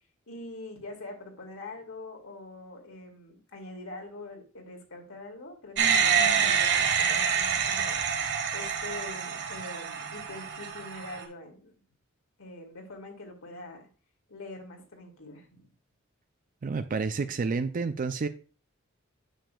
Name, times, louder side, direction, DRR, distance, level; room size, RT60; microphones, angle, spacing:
voice 1, 0.3-8.0 8.5-11.7 12.4-13.8 14.3-15.7 17.1-17.5, left 2 dB, 75° left, 2 dB, 2.5 m, -44 dB
sound 1, 5.8-11.2, right 7 dB, 60° right, 1.6 m, -27 dB
voice 2, 16.6-18.3, right 4 dB, 40° right, 10 dB, 0.4 m, -29 dB
9.0 x 6.8 x 2.3 m, 0.36 s
head